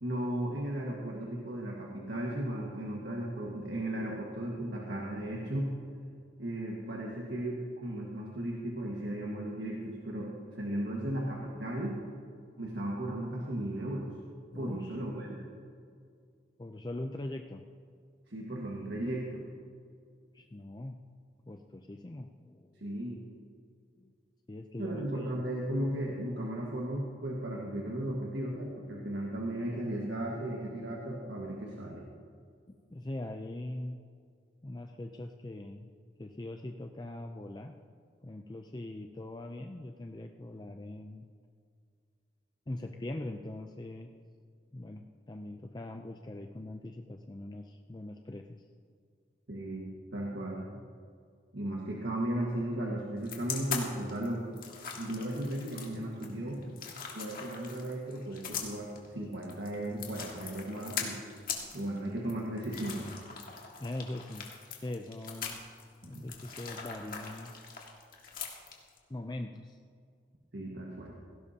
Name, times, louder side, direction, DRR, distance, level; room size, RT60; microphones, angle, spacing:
voice 1, 0.0-5.7 6.4-12.0 12.6-14.1 14.5-15.5 18.3-19.4 22.8-23.2 24.8-32.1 49.5-50.6 51.5-54.5 55.0-56.6 57.1-61.2 61.7-63.2 70.5-71.1, right 1 dB, 70° right, -3 dB, 1.6 m, -36 dB
voice 2, 14.5-15.0 16.6-17.7 20.3-21.0 21.5-22.9 24.0-24.1 24.5-25.5 32.7-34.0 34.6-35.9 36.2-37.8 38.2-41.3 42.7-44.1 44.7-48.6 63.8-64.5 64.8-65.6 66.0-67.5 69.1-69.8, left 1 dB, 20° left, 5 dB, 0.4 m, -42 dB
sound 1, 53.2-69.0, left 6 dB, 50° left, 1.8 m, -41 dB
17.5 x 16.5 x 2.8 m, 2.2 s
head